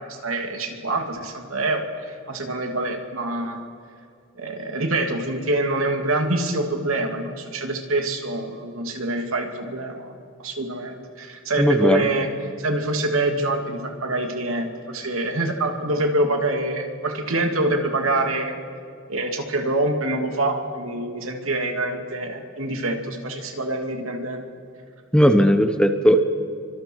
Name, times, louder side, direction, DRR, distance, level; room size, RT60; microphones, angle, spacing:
voice 1, 0.0-3.6 4.4-12.3 12.6-18.6 19.1-24.4, right 2 dB, 90° right, 3 dB, 2.7 m, -25 dB
voice 2, 11.6-12.0 25.1-26.2, equal, 5° left, 7 dB, 1.0 m, -17 dB
29.5 x 24.5 x 4.7 m, 2.3 s
head